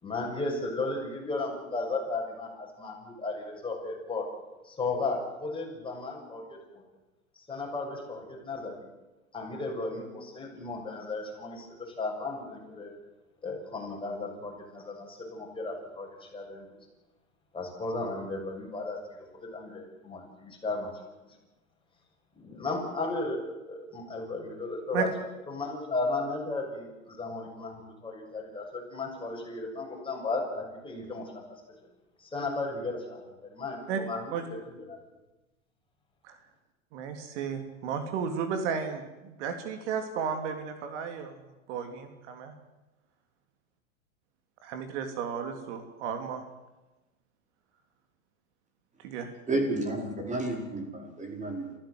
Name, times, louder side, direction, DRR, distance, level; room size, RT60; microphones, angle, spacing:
voice 1, 0.0-4.3 4.6-6.8 7.5-8.9 9.3-12.9 13.4-16.8 17.5-19.3 19.5-20.9 22.4-25.1 25.5-31.4 32.2-34.3 34.6-35.0, left 3 dB, 10° left, 0 dB, 7.1 m, -35 dB
voice 2, 36.9-41.3 41.7-42.5 44.6-46.4 49.0-49.3, right 7 dB, 55° right, 7 dB, 3.1 m, -33 dB
voice 3, 49.5-51.8, right 2 dB, 15° right, 3 dB, 5.2 m, -31 dB
27.5 x 15.5 x 7.9 m, 1.1 s
hypercardioid pair, 110°, 41 cm